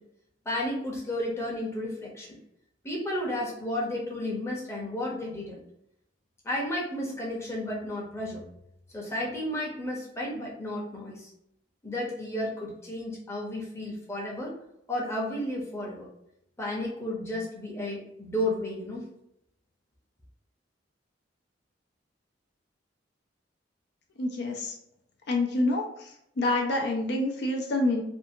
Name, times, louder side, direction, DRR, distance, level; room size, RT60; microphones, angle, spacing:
voice 1, 0.4-2.3 2.8-5.6 6.4-8.4 8.9-11.3 11.8-14.5 14.9-16.1 16.6-19.0, left 1 dB, 15° left, -3 dB, 0.7 m, -32 dB
voice 2, 24.2-24.7 25.3-25.8 26.4-28.0, left 2 dB, 65° left, 1 dB, 0.4 m, -26 dB
2.6 x 2.4 x 2.6 m, 0.78 s
head